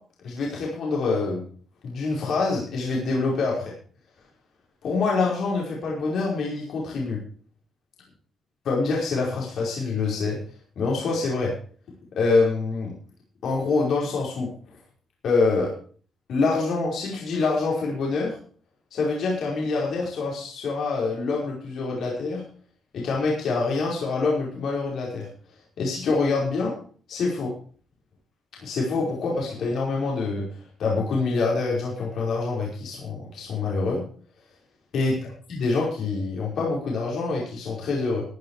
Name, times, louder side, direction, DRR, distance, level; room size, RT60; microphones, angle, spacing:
voice 1, 0.2-1.4 1.8-3.7 4.8-7.2 8.6-10.4 10.8-11.5 12.1-12.9 13.4-14.5 15.2-15.7 16.3-18.3 18.9-22.4 22.9-25.3 25.8-26.7 27.1-27.5 28.6-30.5 30.8-34.0 34.9-35.1 35.5-38.2, left 3 dB, 65° left, -3 dB, 5.0 m, -25 dB
15.0 x 9.3 x 4.9 m, 0.44 s
cardioid pair, 90°, 0 cm